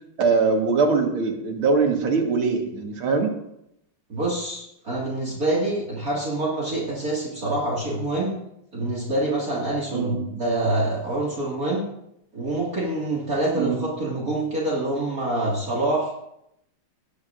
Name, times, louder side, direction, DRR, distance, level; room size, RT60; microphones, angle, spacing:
voice 1, 0.2-3.3 9.9-10.2 13.5-13.8, right 4 dB, 75° right, 2 dB, 2.4 m, -22 dB
voice 2, 4.1-8.4 8.7-11.9 12.3-16.1, right 2 dB, 40° right, -4 dB, 2.5 m, -26 dB
19.0 x 9.7 x 2.6 m, 0.80 s
omnidirectional pair, 2.4 m